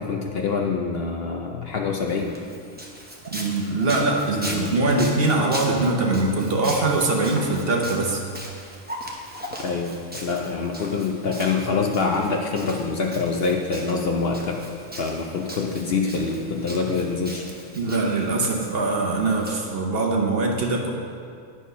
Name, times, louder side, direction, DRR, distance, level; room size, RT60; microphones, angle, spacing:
voice 1, 0.0-2.4 4.4-4.7 9.6-14.6 15.0-17.4, left 4 dB, 60° left, 1 dB, 0.7 m, -25 dB
Walk footsteps, 2.1-19.5, equal, 10° right, 0.6 m, -39 dB
voice 2, 3.3-8.2 17.8-20.9, right 2 dB, 50° right, 0 dB, 1.0 m, -22 dB
9.7 x 4.5 x 5.5 m, 2.3 s
omnidirectional pair, 1.4 m